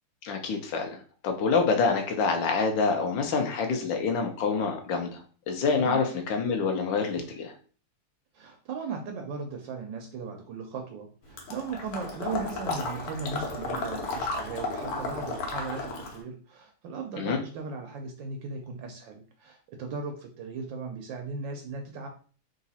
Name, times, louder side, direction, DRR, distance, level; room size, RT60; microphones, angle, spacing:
voice 1, 0.2-1.0 1.2-5.2 5.5-7.5 17.2-17.4, left 4 dB, 65° left, 3 dB, 1.5 m, -26 dB
voice 2, 8.3-22.1, right 4 dB, 70° right, 4 dB, 1.2 m, -37 dB
Water / Liquid, 11.4-16.2, left 3 dB, 85° left, 1.9 m, -33 dB
4.0 x 2.6 x 4.0 m, 0.40 s
omnidirectional pair, 2.4 m